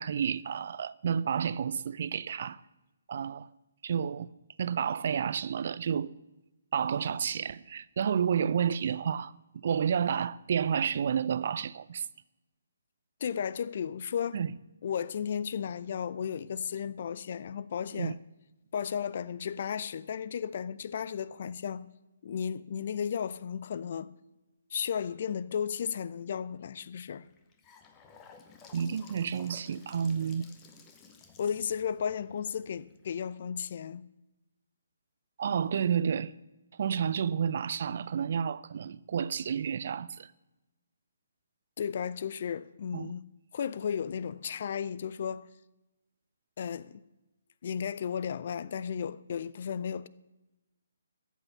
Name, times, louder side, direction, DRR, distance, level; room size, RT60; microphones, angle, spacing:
voice 1, 0.0-2.6 3.1-3.5 3.8-4.3 4.6-6.1 6.7-12.1 14.3-14.5 17.9-18.1 28.7-30.5 35.4-36.3 36.8-40.3 42.9-43.1, right 7 dB, 50° right, 0.5 m, -30 dB
voice 2, 13.2-14.4 14.8-18.2 18.7-21.9 22.2-24.1 24.7-27.3 31.4-34.0 41.8-43.2 43.5-45.5 46.6-47.0 47.6-50.1, left 7 dB, 45° left, 0.6 m, -34 dB
Gurgling / Sink (filling or washing) / Bathtub (filling or washing), 27.2-33.3, left 5 dB, 20° left, 1.4 m, -55 dB
14.0 x 8.4 x 7.1 m
figure-of-eight pair, 135°, 0 cm